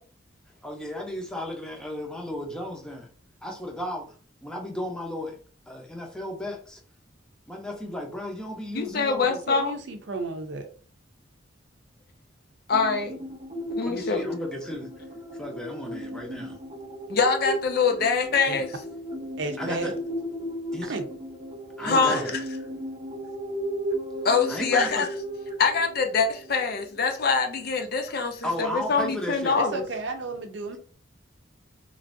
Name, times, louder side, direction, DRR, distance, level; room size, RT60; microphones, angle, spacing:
voice 1, 0.6-3.1 3.4-4.1 4.4-5.4 5.7-6.8 7.5-9.4 13.8-15.0 15.3-16.6 19.6-20.0 20.7-21.0 21.8-22.4 24.5-25.1 28.4-29.6, left 1 dB, 5° left, 0.6 m, -34 dB
voice 2, 8.7-9.7 12.7-13.2 13.7-14.4 17.1-18.8 21.8-22.2 24.2-25.1 25.6-29.8, left 5 dB, 50° left, 0.5 m, -24 dB
voice 3, 9.3-10.7 18.5-18.6 19.4-19.9 20.9-21.0 21.9-22.2 29.6-30.8, right 3 dB, 70° right, 0.5 m, -32 dB
sound 1, 12.7-27.1, equal, 35° right, 0.8 m, -35 dB
3.1 x 2.5 x 2.6 m
head